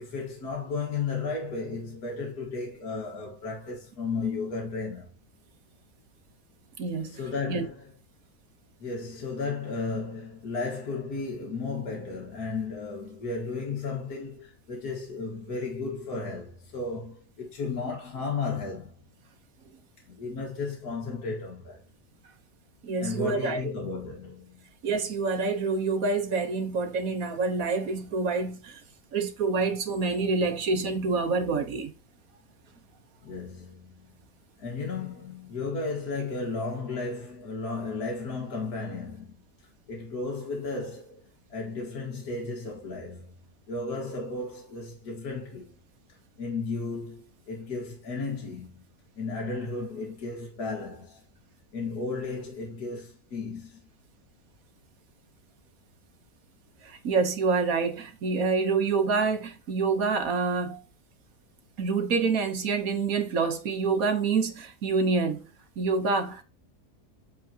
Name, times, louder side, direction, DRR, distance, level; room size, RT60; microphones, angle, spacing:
voice 1, 0.0-5.1 7.0-7.9 8.8-18.9 20.1-21.8 23.0-24.7 33.2-34.2 34.6-39.4 39.9-41.2 41.5-43.3 43.7-45.8 46.4-48.8 49.2-51.2 51.7-53.8, left 4 dB, 70° left, 2.0 m, -34 dB
voice 2, 6.8-7.2 7.5-7.6 22.8-23.7 24.8-28.8 29.1-31.9 56.8-60.8 61.8-65.4 65.8-66.4, right 4 dB, 60° right, 1.4 m, -27 dB
7.9 x 4.6 x 2.8 m
omnidirectional pair, 1.7 m